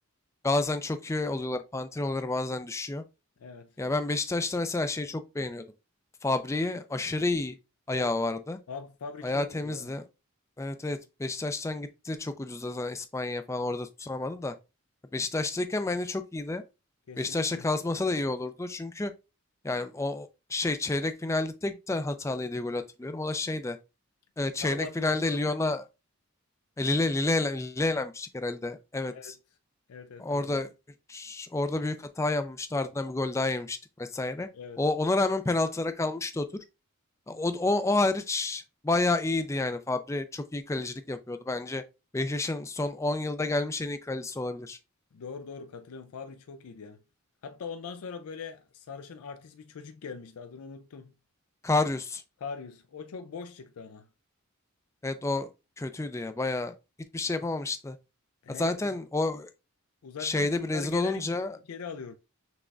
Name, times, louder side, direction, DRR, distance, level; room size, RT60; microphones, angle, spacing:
voice 1, 0.4-3.0 3.8-5.7 6.2-7.6 7.9-8.6 9.2-10.0 10.6-14.6 15.1-16.6 17.2-19.1 19.6-23.8 24.4-25.8 26.8-29.4 30.2-30.7 31.1-34.5 34.8-36.5 37.3-41.8 42.1-44.8 51.6-52.2 55.0-55.5 55.8-56.7 57.1-58.0 58.5-59.5 60.2-61.6, left 2 dB, 15° left, 0.3 m, -30 dB
voice 2, 3.4-3.8 7.9-8.1 8.7-9.9 17.1-17.7 24.6-25.8 29.1-29.4 29.9-30.6 34.5-34.8 45.1-47.0 47.4-51.1 52.4-54.1 58.4-59.0 60.0-61.4 61.7-62.2, left 5 dB, 85° left, 0.4 m, -42 dB
6.1 x 3.3 x 2.4 m
head